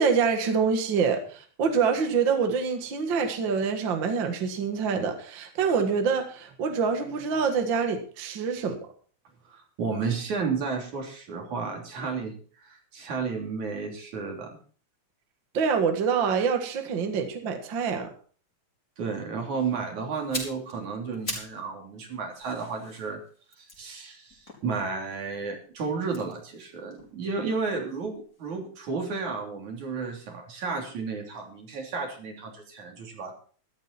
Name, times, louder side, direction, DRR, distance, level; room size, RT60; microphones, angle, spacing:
voice 1, 0.0-8.8 15.5-18.1, right 5 dB, 45° right, 5 dB, 2.1 m, -26 dB
voice 2, 9.5-14.5 19.0-23.2 23.6-33.3, right 5 dB, 75° right, 2 dB, 4.6 m, -32 dB
sound 1, 20.1-21.7 22.0-25.2 26.0-28.1 28.3-28.5, left 2 dB, 25° left, 4.8 m, -41 dB
14.0 x 13.0 x 4.3 m, 0.43 s
omnidirectional pair, 3.4 m